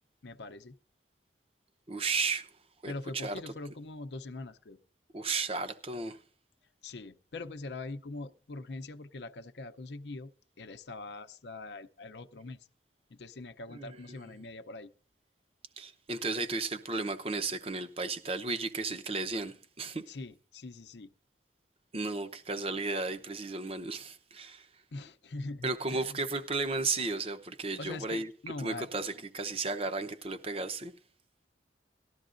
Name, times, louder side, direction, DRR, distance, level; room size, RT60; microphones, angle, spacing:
voice 1, 0.2-0.7 2.8-4.8 6.8-10.3 10.6-12.7 13.1-14.9 20.0-21.1 24.9-26.2 27.8-28.9, left 2 dB, 75° left, 0.6 m, -42 dB
voice 2, 1.9-2.5 2.8-3.3 5.1-6.2 13.7-14.0 15.8-20.0 21.9-24.7 25.6-28.3 28.6-30.9, right 3 dB, 35° right, 0.8 m, -34 dB
18.5 x 12.5 x 2.5 m
head